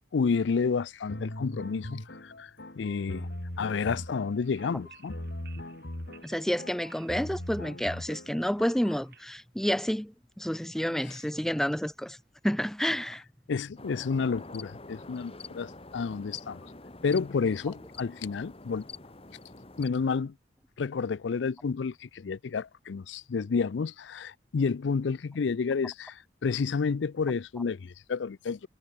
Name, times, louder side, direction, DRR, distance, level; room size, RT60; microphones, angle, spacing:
voice 1, 0.1-2.5 2.8-3.3 3.6-5.2 11.1-11.2 13.5-16.6 17.0-18.9 19.8-20.3 20.8-28.7, left 5 dB, 85° left, 0.5 m, -30 dB
sound 1, 1.1-9.0, left 1 dB, 70° left, 3.4 m, -40 dB
sound 2, 3.0-9.4, right 7 dB, 60° right, 7.7 m, -60 dB
voice 2, 6.2-12.2 12.4-13.2, equal, ahead, 0.5 m, -30 dB
sound 3, 13.8-19.9, left 3 dB, 30° left, 2.1 m, -46 dB
head